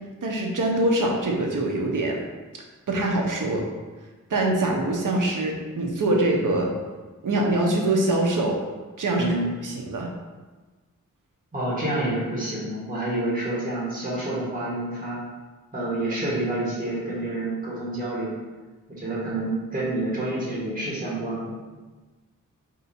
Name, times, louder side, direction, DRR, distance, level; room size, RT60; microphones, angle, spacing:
voice 1, 0.2-2.2 2.9-3.6 4.3-6.7 7.2-8.6 9.0-9.3 9.6-10.1, right 2 dB, 70° right, 0 dB, 0.9 m, -23 dB
voice 2, 11.5-15.2 15.7-18.4 18.9-21.5, right 1 dB, 25° right, -7 dB, 1.5 m, -28 dB
4.6 x 2.7 x 4.2 m, 1.3 s
wide cardioid pair, 80°, 32 cm